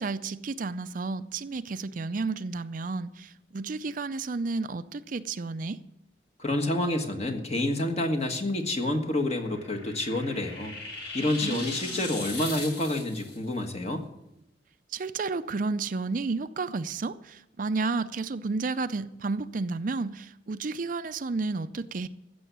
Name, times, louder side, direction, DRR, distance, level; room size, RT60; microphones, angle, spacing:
voice 1, 0.0-5.8 11.4-12.1 14.9-22.1, right 3 dB, 50° right, 0.5 m, -32 dB
voice 2, 6.4-10.8 11.1-14.1, left 1 dB, 35° left, 1.6 m, -28 dB
sound 1, 9.2-13.4, left 2 dB, 80° left, 6.7 m, -39 dB
15.0 x 7.0 x 9.3 m
head